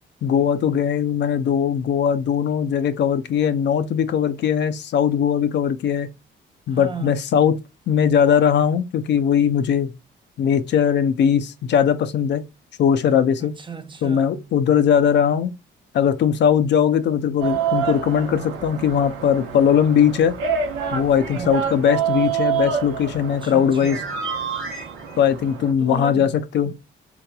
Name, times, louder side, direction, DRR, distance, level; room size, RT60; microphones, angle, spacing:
voice 1, 0.2-6.1 6.7-7.6 7.9-9.9 10.4-12.4 12.8-13.6 14.0-15.5 15.9-20.4 20.9-24.0 25.2-26.7, left 8 dB, 65° left, 0.5 m, -19 dB
voice 2, 6.7-7.2 13.4-14.4 21.3-21.7 23.4-24.1 25.8-26.3 26.6-26.7, right 5 dB, 25° right, 0.5 m, -35 dB
sound 1, 17.4-25.7, right 7 dB, 90° right, 0.9 m, -27 dB
3.8 x 2.9 x 2.2 m
cardioid pair, 90°, 20 cm